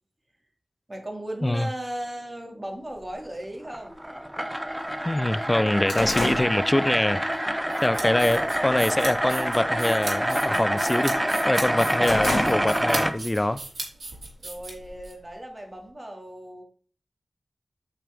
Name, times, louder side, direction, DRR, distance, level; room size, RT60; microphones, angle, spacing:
voice 1, 0.9-3.9 14.4-16.6, right 1 dB, 25° right, 2.2 m, -36 dB
sound 1, 3.0-3.1 4.0-4.1 4.6-4.7 5.0-7.4 7.8-8.1 8.6-9.1 9.3-9.6 9.9-11.2 11.6-13.1 13.4-13.5 14.4-15.3, left 2 dB, 80° left, 3.3 m, -32 dB
sound 2, 3.6-13.1, equal, 10° right, 0.7 m, -27 dB
voice 2, 5.0-7.3 7.8-11.2 11.5-13.6, left 1 dB, 20° left, 0.4 m, -24 dB
sound 3, 7.7-15.1, right 2 dB, 75° right, 3.4 m, -37 dB
8.7 x 6.1 x 3.4 m
wide cardioid pair, 95°, 0 cm